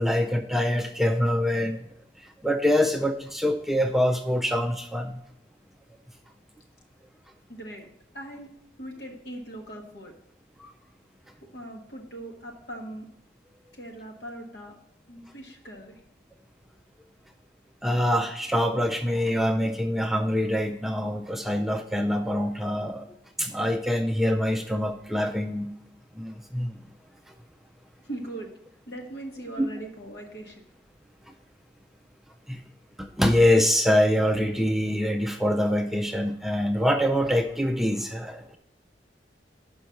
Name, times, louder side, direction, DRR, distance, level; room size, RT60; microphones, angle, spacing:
voice 1, 0.0-1.9 2.2-5.2 10.6-10.7 17.8-23.1 23.4-25.7 26.1-26.8 29.6-29.7 32.5-32.6 33.0-38.6, left 1 dB, ahead, 4 dB, 0.4 m, -25 dB
voice 2, 7.5-7.9 8.1-8.5 8.8-10.1 11.5-13.0 13.7-14.7 15.1-16.0 28.0-28.5 28.9-30.6, right 1 dB, 75° left, 2 dB, 1.4 m, -40 dB
5.8 x 5.4 x 6.2 m, 0.74 s
head